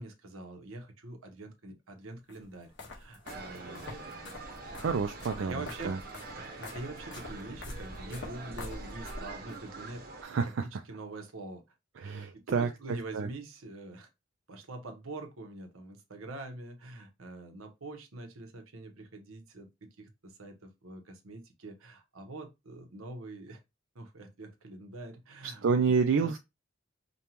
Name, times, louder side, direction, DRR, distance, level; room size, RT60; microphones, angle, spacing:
voice 1, 0.0-3.9 5.3-6.0 6.4-10.0 10.4-11.6 12.3-14.1 14.5-23.6 23.9-25.9 26.2-26.3, right 2 dB, 85° right, 0.9 m, -45 dB
sound 1, 2.3-9.6, left 2 dB, 60° left, 1.3 m, -45 dB
sound 2, 3.3-10.2, right 3 dB, 45° right, 0.8 m, -45 dB
voice 2, 4.8-6.0 10.2-10.6 12.0-13.3 25.4-26.4, right 5 dB, 65° right, 0.4 m, -29 dB
5.2 x 2.3 x 2.9 m
head